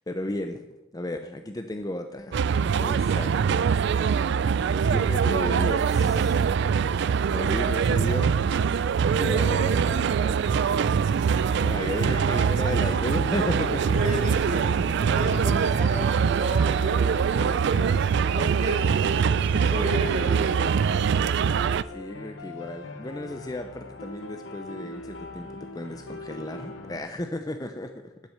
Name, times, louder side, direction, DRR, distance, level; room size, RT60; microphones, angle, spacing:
voice 1, 0.1-0.6 0.9-3.6 4.9-6.4 7.3-8.3 9.2-10.6 11.0-11.3 11.6-14.1 21.9-28.1, left 1 dB, 20° left, 6 dB, 0.6 m, -34 dB
sound 1, 2.3-21.8, right 6 dB, 55° right, 0.3 m, -23 dB
sound 2, 12.2-27.0, left 2 dB, 75° left, 1.2 m, -41 dB
voice 2, 13.9-18.0 18.3-20.8, right 1 dB, 35° right, 2 dB, 1.0 m, -33 dB
9.1 x 8.3 x 6.7 m, 1.0 s
head